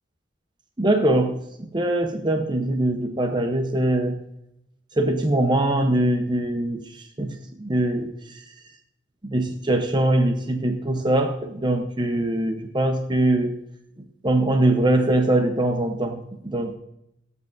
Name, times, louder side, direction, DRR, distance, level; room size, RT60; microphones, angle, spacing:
voice 1, 0.8-4.2 5.0-8.4 9.2-13.6 14.2-16.8, right 1 dB, 25° right, 5 dB, 0.8 m, -22 dB
17.5 x 8.2 x 2.6 m, 0.82 s
head